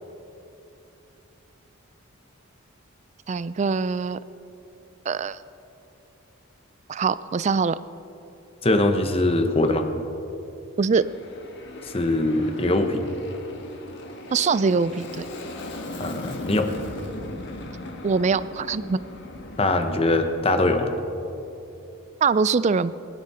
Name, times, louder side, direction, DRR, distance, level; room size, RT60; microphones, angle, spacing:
voice 1, 3.3-4.2 5.1-5.4 6.9-7.8 10.8-11.1 14.3-15.2 18.0-19.0 22.2-22.9, right 5 dB, 35° right, 16 dB, 0.3 m, -23 dB
voice 2, 8.6-9.9 11.8-13.0 16.0-16.7 19.6-20.9, left 2 dB, 25° left, 6 dB, 1.0 m, -22 dB
Aircraft, 10.9-19.7, left 1 dB, 55° left, 1.4 m, -38 dB
21.5 x 11.0 x 4.3 m, 2.9 s
head